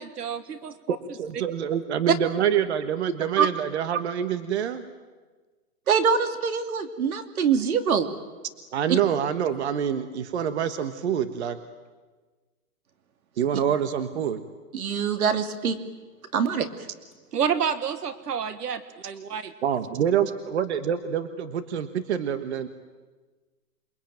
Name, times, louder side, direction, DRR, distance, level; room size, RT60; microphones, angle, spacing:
voice 1, 0.0-1.0 17.3-19.5, right 7 dB, 90° right, 12 dB, 1.7 m, -29 dB
voice 2, 0.9-4.8 8.7-11.6 13.4-14.4 19.6-22.7, right 9 dB, 45° right, 10 dB, 1.5 m, -26 dB
voice 3, 5.9-8.1 14.7-15.8 16.3-16.7, right 6 dB, 65° right, 8 dB, 2.9 m, -23 dB
28.0 x 23.0 x 9.2 m, 1.3 s
hypercardioid pair, 165°, 46 cm